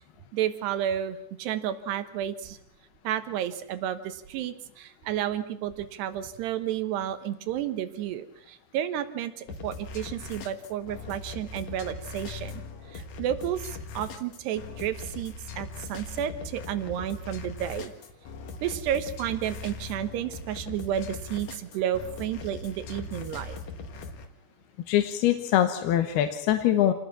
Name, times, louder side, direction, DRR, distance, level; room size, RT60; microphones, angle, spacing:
voice 1, 0.3-2.6 3.0-12.6 12.9-17.9 18.6-23.6, right 10 dB, 85° right, 10 dB, 3.4 m, -31 dB
sound 1, 9.5-24.3, left 3 dB, 50° left, 2.5 m, -40 dB
voice 2, 24.9-26.9, left 11 dB, 75° left, 7 dB, 3.1 m, -23 dB
28.0 x 19.5 x 6.1 m, 0.71 s
omnidirectional pair, 4.7 m